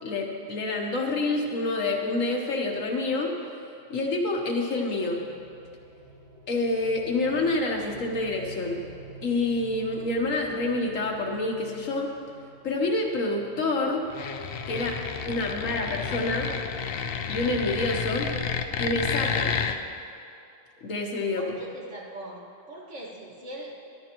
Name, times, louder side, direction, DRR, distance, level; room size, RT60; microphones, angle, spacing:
voice 1, 0.0-3.3 3.9-5.3 6.5-8.8 9.2-12.1 12.6-14.0 14.7-15.0 15.3-16.5 17.3-18.3 18.8-19.6 20.8-21.5, left 2 dB, 85° left, 1 dB, 1.6 m, -27 dB
sound 1, 4.7-19.5, right 2 dB, 15° left, 3.1 m, -48 dB
sound 2, 14.1-19.8, left 6 dB, 60° left, 0.7 m, -30 dB
voice 2, 21.3-23.9, right 1 dB, 65° right, -4 dB, 2.2 m, -41 dB
14.0 x 11.5 x 3.0 m, 2.6 s
omnidirectional pair, 1.3 m